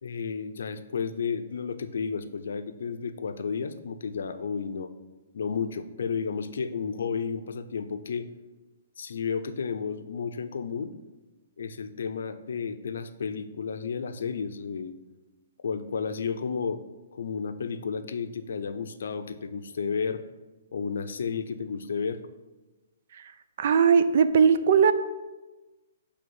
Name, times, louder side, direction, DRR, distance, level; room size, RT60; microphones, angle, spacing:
voice 1, 0.0-4.9 5.3-8.3 9.0-10.9 11.6-14.9 15.6-16.8 17.2-20.2 20.7-22.2, left 6 dB, 75° left, 11 dB, 0.5 m, -32 dB
voice 2, 23.6-24.9, right 6 dB, 60° right, 11 dB, 0.5 m, -19 dB
7.7 x 3.4 x 5.4 m, 1.1 s
hypercardioid pair, 140°, 0 cm